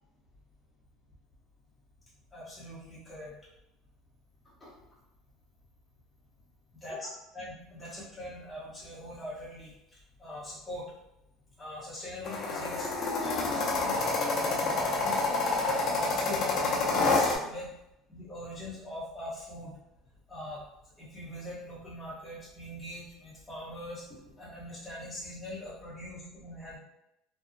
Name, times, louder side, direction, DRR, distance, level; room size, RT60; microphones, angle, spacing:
voice 1, 2.3-3.3 4.6-4.7 6.8-7.1 7.3-9.7 10.2-10.8 11.6-12.9 13.2-15.1 15.6-17.7 18.1-19.7 20.3-20.6 21.0-26.8, left 1 dB, 10° left, -8 dB, 0.9 m, -42 dB
sound 1, 12.2-17.4, left 3 dB, 35° left, 0.5 m, -28 dB
2.7 x 2.1 x 2.5 m, 0.84 s
cardioid pair, 165°, 0 cm